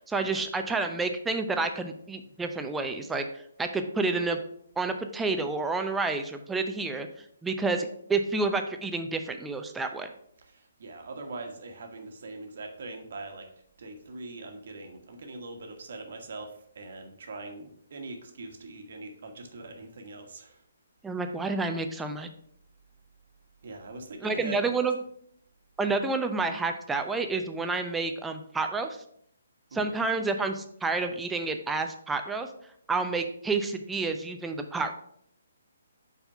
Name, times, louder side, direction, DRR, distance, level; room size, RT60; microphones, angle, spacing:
voice 1, 0.1-3.2 3.6-4.4 4.8-7.1 7.4-10.1 21.0-22.3 24.2-24.9 25.8-29.0 29.7-32.5 32.9-34.9, right 3 dB, 10° right, 6 dB, 0.6 m, -29 dB
voice 2, 10.4-13.5 13.8-20.6 23.6-24.7 29.7-29.9, right 3 dB, 60° right, 4 dB, 1.4 m, -42 dB
5.7 x 4.3 x 5.4 m, 0.68 s
figure-of-eight pair, 140°, 0 cm